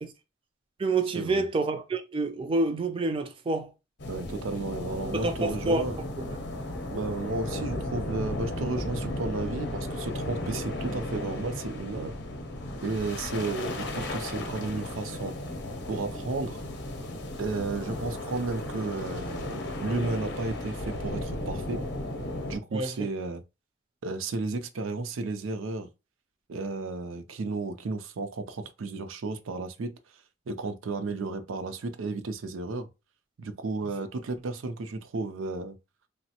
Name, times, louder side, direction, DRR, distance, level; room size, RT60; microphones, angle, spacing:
voice 1, 0.8-3.7 5.1-5.9 6.2-6.4 22.7-22.9, right 2 dB, 25° right, 0.3 m, -28 dB
sound 1, 4.0-22.6, left 1 dB, 60° left, 0.6 m, -35 dB
voice 2, 4.1-6.0 6.9-12.1 12.8-15.3 15.9-16.6 17.4-21.8 22.4-23.4 24.0-25.9 26.5-30.0 30.5-32.9 33.4-35.8, right 3 dB, 85° right, 0.5 m, -33 dB
3.2 x 2.0 x 2.8 m
head